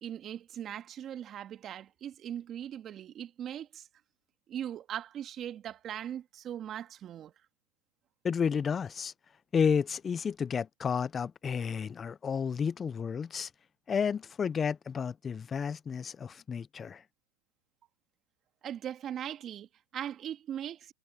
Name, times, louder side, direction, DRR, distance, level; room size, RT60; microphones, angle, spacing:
voice 1, 0.0-3.9 4.5-7.3 18.6-20.9, right 10 dB, 35° right, 1.9 m, -40 dB
voice 2, 8.2-9.1 9.5-13.5 13.9-17.0, left 6 dB, 25° left, 0.3 m, -31 dB
hypercardioid pair, 115°, 0 cm